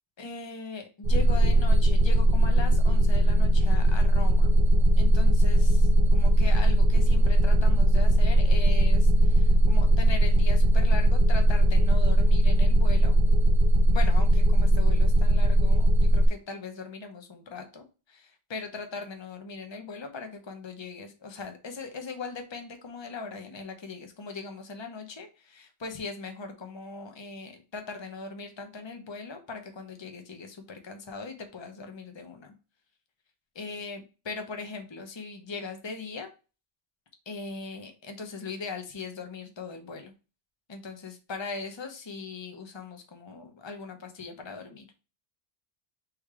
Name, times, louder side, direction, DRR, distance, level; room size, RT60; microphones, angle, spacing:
voice 1, 0.2-4.5 5.0-13.1 13.9-32.5 33.5-36.3 37.3-40.1 40.7-44.9, left 4 dB, 30° left, 5 dB, 0.8 m, -40 dB
sound 1, 1.0-16.3, right 1 dB, 60° right, 0.8 m, -20 dB
3.5 x 3.2 x 4.7 m, 0.32 s
omnidirectional pair, 1.0 m